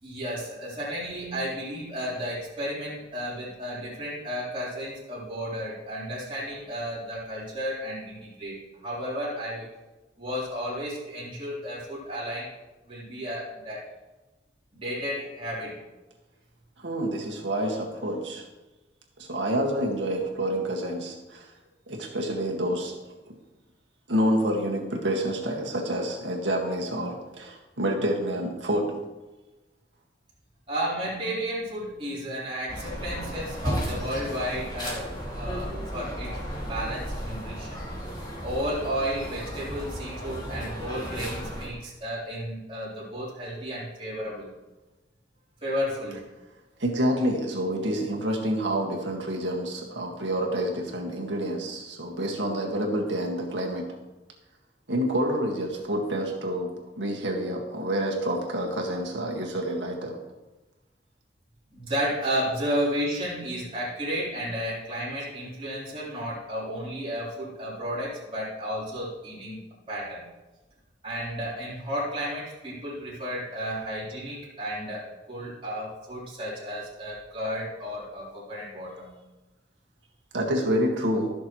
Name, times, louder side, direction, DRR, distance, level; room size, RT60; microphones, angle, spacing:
voice 1, 0.0-9.7 10.2-12.5 12.9-13.8 14.7-15.8 30.7-35.1 35.4-37.9 38.4-44.5 45.6-46.2 61.7-70.2 71.0-79.1, equal, 30° right, -8 dB, 3.8 m, -33 dB
voice 2, 16.8-18.4 19.2-21.5 21.9-23.1 24.1-29.0 46.8-53.9 54.9-60.2 80.3-81.3, equal, 85° right, 0 dB, 1.9 m, -28 dB
sound 1, 32.7-41.7, equal, 25° left, 2.4 m, -34 dB
15.5 x 6.5 x 3.1 m, 1.1 s
head